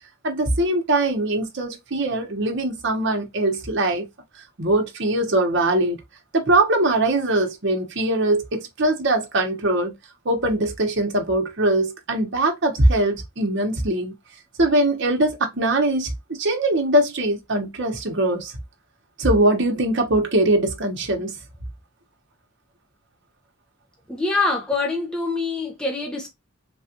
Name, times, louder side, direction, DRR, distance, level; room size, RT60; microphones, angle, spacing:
voice 1, 0.2-4.1 4.6-6.0 6.3-9.9 10.2-14.1 14.6-16.1 16.4-18.5 19.2-21.4, right 1 dB, 60° right, 0.9 m, -21 dB
voice 2, 24.1-26.3, left 3 dB, 5° left, 0.6 m, -25 dB
3.4 x 2.4 x 2.7 m
head